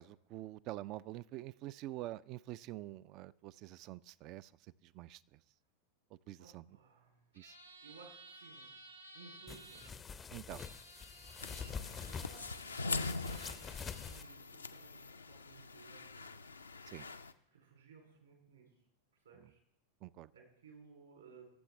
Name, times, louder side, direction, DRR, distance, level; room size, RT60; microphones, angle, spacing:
voice 1, 0.0-4.5 4.8-5.4 6.3-6.6 7.4-7.6 10.3-10.7 16.9-17.1 20.0-20.3, right 15 dB, 40° right, 20 dB, 0.3 m, -46 dB
voice 2, 6.4-7.2 7.8-8.7 9.1-9.9 11.9-13.8 14.1-16.6 17.5-18.7 19.2-19.6 20.3-21.5, right 5 dB, 70° right, 1 dB, 3.6 m, -59 dB
sound 1, 7.3-9.9 10.5-11.7 12.8-12.9 13.2-14.2, right 2 dB, 85° right, 1.2 m, -55 dB
sound 2, 9.5-14.2, left 6 dB, 20° left, 0.5 m, -46 dB
sound 3, 11.4-17.3, left 3 dB, 80° left, 0.4 m, -43 dB
18.0 x 7.5 x 3.5 m, 0.77 s
figure-of-eight pair, 90°, 0 cm